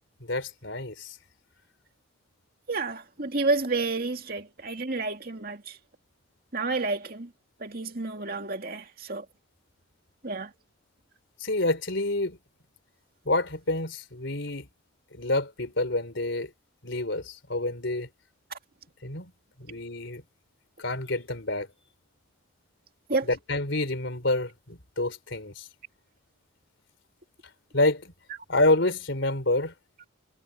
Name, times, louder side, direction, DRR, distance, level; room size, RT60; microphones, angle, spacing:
voice 1, 0.3-1.2 11.4-12.4 13.3-14.7 15.1-16.5 16.8-18.1 19.0-19.3 19.6-20.2 20.8-21.7 23.2-25.7 27.7-28.1 28.5-29.7, left 2 dB, 60° left, 3.9 m, -28 dB
voice 2, 2.7-5.8 6.5-7.3 7.6-9.2 10.2-10.5 23.1-23.3, right 3 dB, 45° right, 2.3 m, -30 dB
head